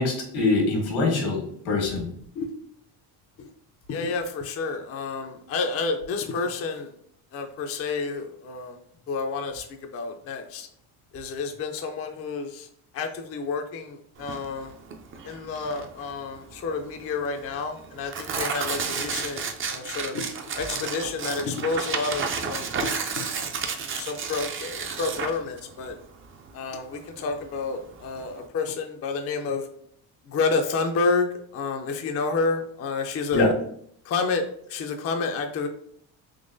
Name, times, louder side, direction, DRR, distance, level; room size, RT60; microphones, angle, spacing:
voice 1, 0.0-2.1 33.3-33.5, left 3 dB, 80° left, 1 dB, 1.4 m, -24 dB
voice 2, 3.9-6.9 7.3-8.8 9.1-9.7 9.9-10.7 11.1-12.7 12.9-14.7 15.2-20.3 20.5-23.5 24.0-25.9 26.5-29.6 30.3-33.5 34.1-34.4 34.7-35.7, left 4 dB, 30° left, 4 dB, 0.4 m, -29 dB
Tearing, 14.2-28.4, right 5 dB, 30° right, 0.4 m, -32 dB
3.8 x 2.9 x 2.6 m, 0.66 s
supercardioid pair, 95°, 48 cm